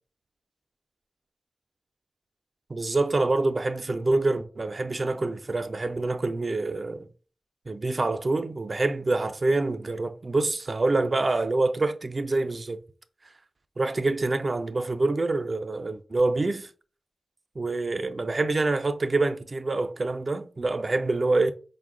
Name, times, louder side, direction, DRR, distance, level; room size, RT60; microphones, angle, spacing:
voice 1, 2.7-7.1 7.7-12.8 13.8-16.7 17.6-21.5, right 2 dB, 50° right, 0.4 m, -26 dB
4.5 x 2.1 x 3.6 m
cardioid pair, 50°, 0 cm